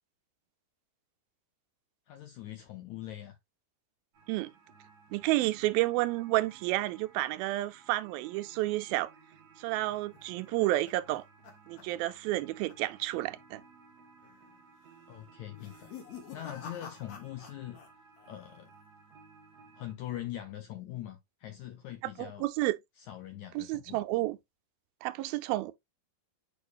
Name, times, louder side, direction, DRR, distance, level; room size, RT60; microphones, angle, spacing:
voice 1, 2.1-3.4 15.1-15.9 16.3-17.8 18.3-18.7 19.7-22.4 23.0-24.0, left 13 dB, 80° left, 1.7 m, -42 dB
sound 1, 4.1-20.0, right 4 dB, 55° right, 2.2 m, -58 dB
voice 2, 5.1-9.1 9.6-11.2 11.7-13.6 22.2-22.8 23.6-24.4 25.0-25.7, right 18 dB, 85° right, 2.4 m, -30 dB
sound 2, 9.9-12.4 12.7-13.0 13.3-13.4 14.2-14.6 15.5-17.9 18.2-18.7, left 7 dB, 55° left, 2.5 m, -49 dB
9.2 x 4.8 x 2.4 m
omnidirectional pair, 4.2 m